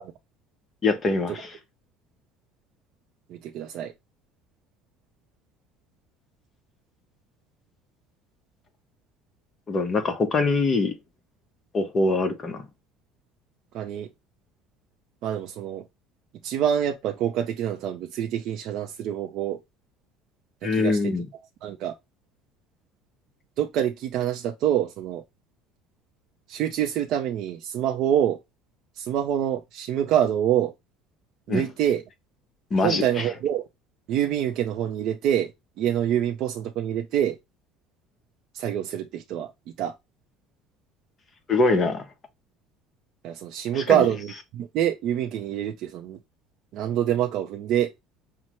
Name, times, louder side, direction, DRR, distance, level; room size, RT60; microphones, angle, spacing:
voice 1, 0.8-1.5 9.7-10.9 11.7-12.6 20.6-21.2 31.5-31.7 32.7-33.0 41.5-42.0 43.7-44.1, left 3 dB, 25° left, 0.9 m, -23 dB
voice 2, 3.3-3.9 13.7-14.1 15.2-15.8 16.4-19.6 20.6-21.1 21.6-21.9 23.6-25.2 26.5-28.4 29.0-30.7 31.5-32.0 32.8-33.6 34.1-35.5 35.8-37.4 38.5-39.5 39.8-39.9 43.2-46.2 46.7-47.9, right 10 dB, 60° right, 0.5 m, -26 dB
5.6 x 2.1 x 3.0 m
cardioid pair, 140°, 0 cm